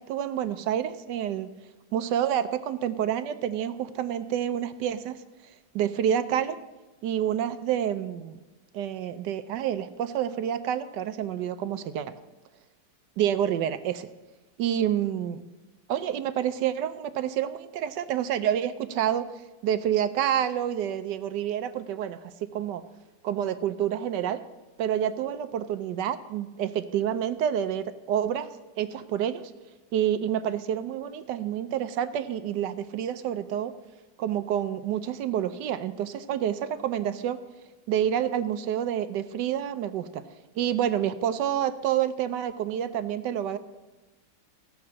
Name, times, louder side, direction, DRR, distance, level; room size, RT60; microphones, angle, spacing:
voice 1, 0.0-1.5 1.9-5.2 5.7-6.6 7.0-8.4 8.7-12.0 13.2-14.1 14.6-15.4 15.9-19.2 19.6-22.8 23.2-24.4 24.8-28.5 28.8-29.4 29.9-33.7 34.2-37.4 37.9-40.2 40.6-43.6, right 10 dB, 75° right, 11 dB, 1.2 m, -28 dB
14.5 x 5.9 x 7.4 m, 1.1 s
omnidirectional pair, 2.1 m